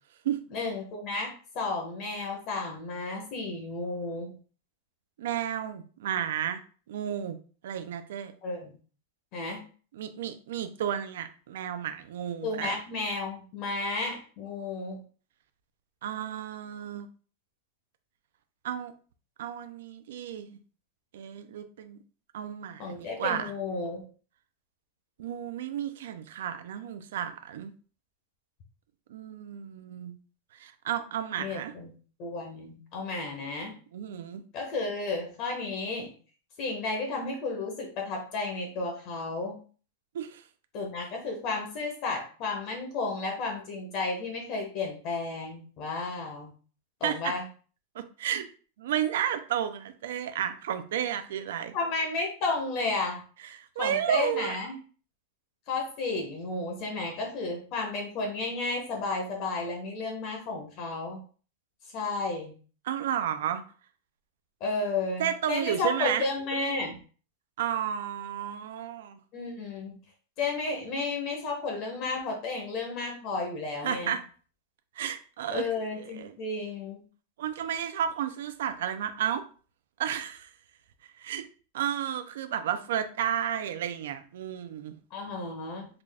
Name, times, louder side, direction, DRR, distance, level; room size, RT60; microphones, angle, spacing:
voice 1, 0.5-4.3 8.4-8.7 9.3-9.6 12.4-15.0 22.8-24.0 31.4-31.9 32.2-33.7 34.5-36.1 36.6-39.6 40.7-46.5 47.0-47.4 51.7-53.2 53.8-54.8 55.7-61.2 61.9-62.6 64.6-67.0 69.3-70.0 70.4-74.1 75.5-77.0 85.1-85.9, left 3 dB, 30° left, 2 dB, 0.7 m, -32 dB
voice 2, 5.2-6.6 6.9-7.4 7.6-8.3 9.9-12.8 16.0-17.1 18.6-18.9 19.4-20.6 21.1-22.0 22.3-23.5 25.2-27.7 29.1-30.1 30.5-31.7 33.9-34.4 40.1-40.4 47.0-47.3 48.0-48.5 48.8-51.8 53.4-54.6 62.9-63.6 65.2-66.3 67.6-69.2 73.8-74.2 75.0-76.3 77.4-79.4 80.0-80.5 81.2-81.5 81.7-84.9, right 10 dB, 65° right, 8 dB, 0.4 m, -32 dB
3.8 x 2.3 x 3.3 m, 0.39 s
supercardioid pair, 180°, 0 cm